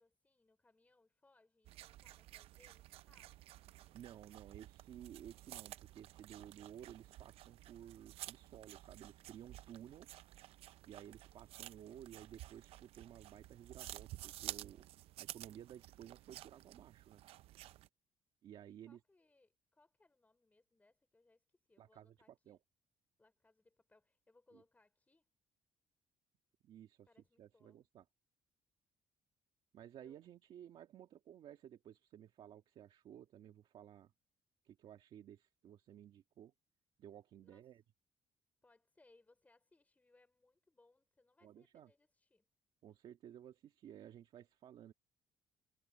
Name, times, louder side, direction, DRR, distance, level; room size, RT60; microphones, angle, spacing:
voice 1, 0.0-3.5 18.9-22.6 23.2-25.2 27.1-27.8 30.0-30.2 37.4-37.7 38.6-42.5, left 2 dB, 15° left, 4.4 m, -72 dB
sound 1, 1.6-17.9, right 15 dB, 80° right, 0.5 m, -53 dB
voice 2, 3.9-10.1 10.8-14.9 15.2-17.2 18.4-19.0 21.8-22.6 24.5-24.6 26.6-27.1 27.4-28.0 29.7-34.1 34.6-36.5 37.0-37.8 41.4-41.9 42.8-44.9, right 10 dB, 65° right, 1.7 m, -55 dB
cardioid pair, 115°, 10 cm